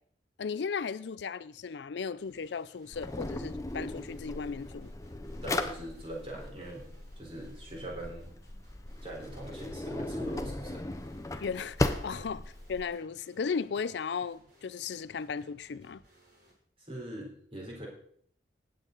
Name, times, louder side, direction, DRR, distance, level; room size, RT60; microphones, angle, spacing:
voice 1, 0.4-4.9 11.4-16.0, left 5 dB, 70° left, 0.4 m, -36 dB
sound 1, 2.2-16.5, right 1 dB, 55° right, 7.0 m, -63 dB
Drawer open or close, 2.9-12.9, left 2 dB, 20° left, 0.7 m, -37 dB
voice 2, 5.4-8.3 9.0-10.9 12.1-12.2 16.8-17.9, right 1 dB, 30° right, 4.1 m, -42 dB
19.0 x 8.2 x 4.0 m
head